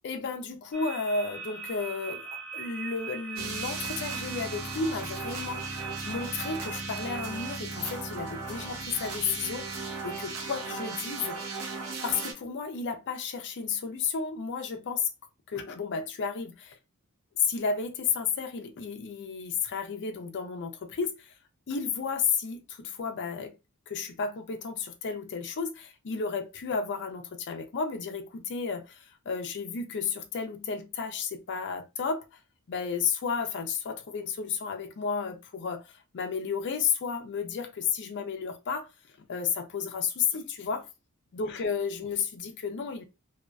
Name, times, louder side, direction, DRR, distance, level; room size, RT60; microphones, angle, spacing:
voice 1, 0.0-5.6 6.0-9.8 10.0-11.4 12.0-15.1 15.5-16.8 17.4-21.3 21.7-23.5 23.9-32.2 32.7-38.9 39.3-40.9 41.3-43.0, left 5 dB, 55° left, 0.4 m, -32 dB
sound 1, 0.7-7.6, right 7 dB, 5° left, 0.8 m, -41 dB
sound 2, 3.4-12.3, right 3 dB, 70° right, 0.7 m, -37 dB
2.5 x 2.3 x 2.2 m
head